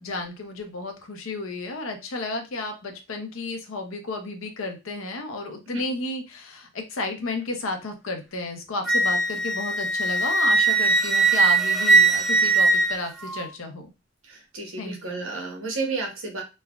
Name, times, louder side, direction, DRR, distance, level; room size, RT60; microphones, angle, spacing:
voice 1, 0.0-13.9 14.8-15.3, left 2 dB, 80° left, 5 dB, 0.6 m, -32 dB
Wind instrument woodwind instrument, 8.9-13.4, right 3 dB, ahead, 0.4 m, -20 dB
voice 2, 14.2-16.4, right 3 dB, 75° right, 1 dB, 1.0 m, -32 dB
3.1 x 2.1 x 2.4 m, 0.27 s
head